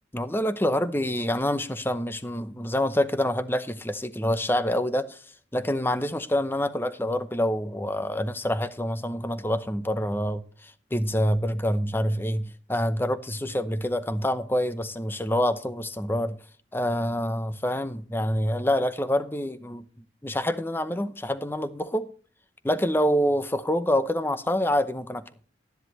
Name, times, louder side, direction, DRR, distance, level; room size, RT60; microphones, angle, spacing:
voice 1, 0.1-5.2 5.5-16.4 16.7-19.8 20.2-22.1 22.6-25.2, equal, 10° left, 0.7 m, -26 dB
13.0 x 10.5 x 3.1 m
head